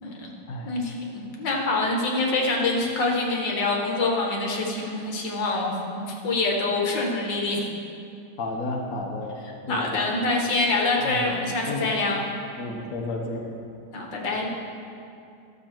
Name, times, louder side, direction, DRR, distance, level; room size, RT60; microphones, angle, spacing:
voice 1, 0.0-0.3 0.7-7.6 9.7-12.2 13.9-14.5, left 2 dB, 70° left, -1 dB, 1.9 m, -25 dB
voice 2, 8.4-9.3 9.7-10.0 11.0-11.2 11.7-11.9 12.6-13.5, left 2 dB, 55° left, 0 dB, 1.2 m, -32 dB
12.5 x 6.9 x 4.5 m, 2.6 s
omnidirectional pair, 2.0 m